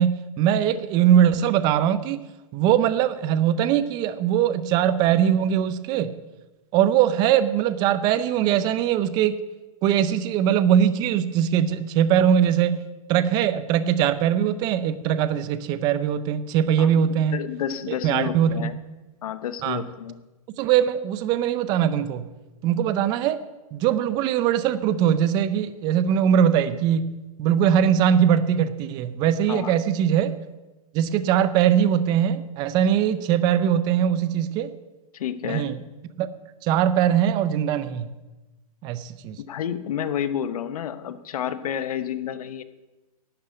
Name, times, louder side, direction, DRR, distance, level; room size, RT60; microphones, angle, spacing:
voice 1, 0.0-2.3 2.5-6.1 6.7-9.4 9.8-12.8 13.1-17.4 17.9-18.7 19.6-19.8 20.6-22.3 22.6-23.4 23.7-27.1 27.4-30.3 30.9-34.7 35.4-35.8 36.2-36.3 36.6-38.1 38.8-39.4, right 9 dB, 20° right, 14 dB, 0.5 m, -21 dB
voice 2, 17.3-18.7 19.2-20.2 29.5-29.7 35.1-35.8 39.5-42.6, left 9 dB, 70° left, 12 dB, 1.0 m, -30 dB
12.0 x 6.5 x 9.0 m, 1.1 s
hypercardioid pair, 165°, 19 cm